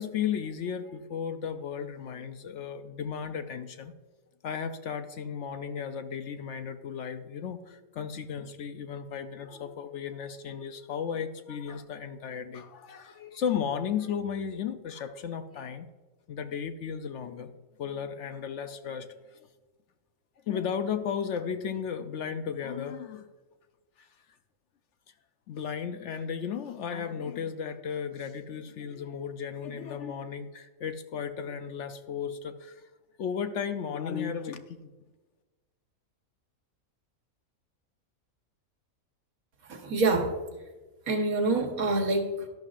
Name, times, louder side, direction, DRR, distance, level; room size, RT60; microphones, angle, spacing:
voice 1, 0.0-3.9 4.4-15.9 16.3-17.5 17.8-19.1 20.5-23.3 24.0-24.1 25.5-32.9 33.2-34.9, left 7 dB, 65° left, 9 dB, 0.8 m, -35 dB
voice 2, 39.7-40.3 41.1-42.5, right 2 dB, 75° right, 4 dB, 1.6 m, -26 dB
11.5 x 11.5 x 2.5 m, 1.2 s
omnidirectional pair, 1.5 m